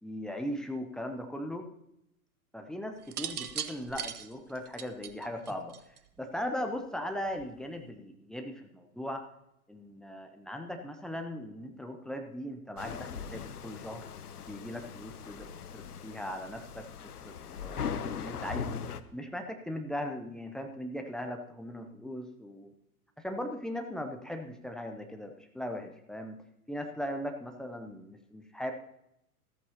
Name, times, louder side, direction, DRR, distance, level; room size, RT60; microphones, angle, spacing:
voice 1, 0.0-1.7 2.5-5.7 6.2-9.2 9.7-14.1 14.5-16.9 17.2-17.3 17.6-18.9 19.1-22.7 23.2-26.4 26.7-28.7, equal, ahead, 4 dB, 0.5 m, -38 dB
sound 1, 3.0-6.2 7.3-7.6, right 8 dB, 75° right, 0.9 m, -39 dB
sound 2, 12.8-19.0, left 7 dB, 75° left, 0.8 m, -40 dB
14.0 x 13.5 x 2.9 m, 0.79 s
figure-of-eight pair, 100°, 46 cm